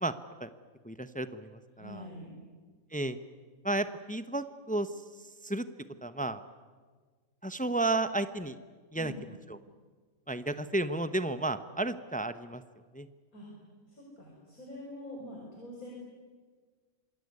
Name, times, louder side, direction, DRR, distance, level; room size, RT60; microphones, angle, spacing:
voice 1, 0.8-2.0 2.9-3.2 3.6-4.9 5.4-5.7 6.0-6.4 7.4-8.6 8.9-9.1 9.5-9.6 10.3-12.6 12.9-13.1, right 2 dB, 10° left, 12 dB, 0.6 m, -32 dB
voice 2, 1.8-2.4 9.0-9.3 13.3-13.5 13.9-16.0, left 1 dB, 85° left, -2 dB, 5.7 m, -45 dB
26.0 x 20.0 x 9.7 m, 1.5 s
omnidirectional pair, 1.5 m